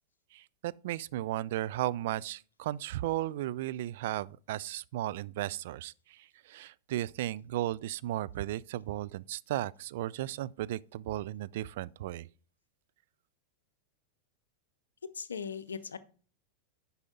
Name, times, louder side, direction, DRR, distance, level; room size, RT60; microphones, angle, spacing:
voice 1, 0.3-12.3, right 14 dB, 55° right, 0.3 m, -35 dB
voice 2, 15.1-16.0, left 6 dB, 70° left, 0.6 m, -38 dB
9.6 x 5.7 x 3.8 m
figure-of-eight pair, 90°, 0 cm